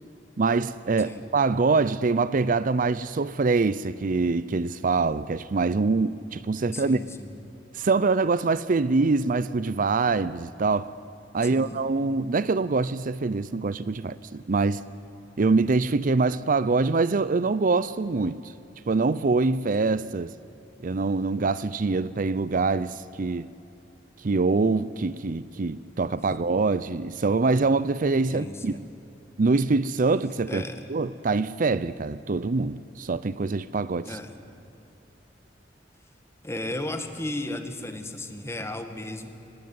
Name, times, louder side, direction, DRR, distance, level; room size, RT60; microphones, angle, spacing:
voice 1, 0.4-7.0 7.7-10.9 11.3-14.8 15.4-18.4 18.9-20.3 20.8-23.5 24.2-28.8 29.4-30.6 30.9-34.2, right 3 dB, 50° right, 0.5 m, -24 dB
voice 2, 6.7-7.3 11.4-11.8 28.3-28.9 30.5-30.9 34.1-34.4 36.4-39.3, left 1 dB, 15° left, 1.9 m, -35 dB
25.0 x 19.0 x 9.6 m
head